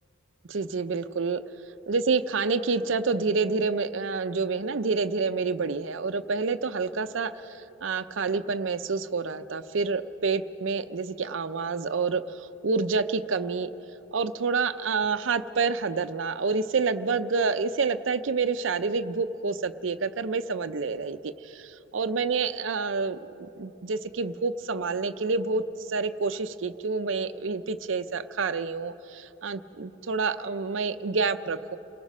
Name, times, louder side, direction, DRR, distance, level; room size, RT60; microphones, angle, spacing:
voice 1, 0.5-1.4 1.9-13.7 14.1-23.2 23.6-25.6 25.9-31.8, right 4 dB, 70° right, 10 dB, 0.6 m, -28 dB
29.0 x 18.5 x 5.4 m, 3.0 s
head